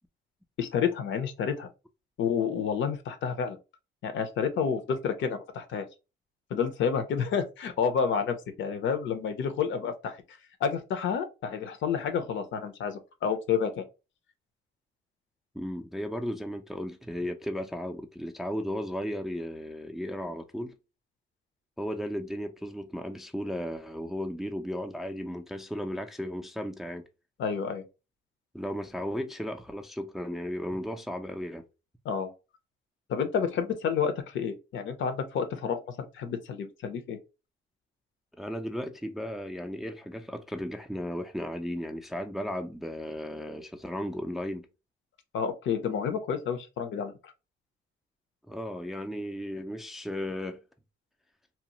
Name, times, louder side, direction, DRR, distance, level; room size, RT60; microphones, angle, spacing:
voice 1, 0.6-1.7 2.2-3.6 4.0-5.9 6.5-10.2 10.6-13.8 27.4-27.8 32.0-32.3 33.1-37.2 45.3-47.3, left 6 dB, 70° left, 0.6 m, -30 dB
voice 2, 15.5-20.8 21.8-27.0 28.5-31.6 38.3-44.7 48.5-50.6, equal, ahead, 0.3 m, -35 dB
2.8 x 2.0 x 2.8 m
cardioid pair, 90°, 20 cm